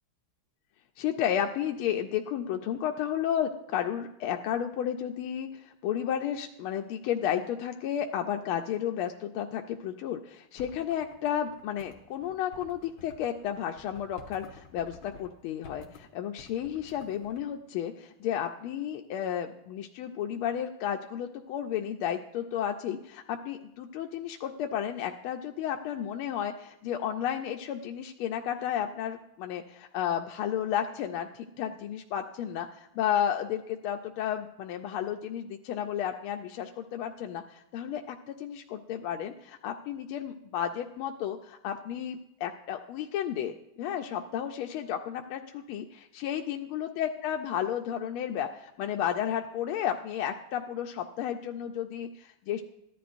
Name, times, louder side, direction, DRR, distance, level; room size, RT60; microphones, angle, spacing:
voice 1, 1.0-52.6, left 9 dB, 85° left, 4 dB, 1.5 m, -32 dB
sound 1, 10.6-15.3 15.6-16.0 16.4-17.4, left 3 dB, 70° left, 2.0 m, -52 dB
14.0 x 11.0 x 2.5 m, 0.85 s
omnidirectional pair, 2.3 m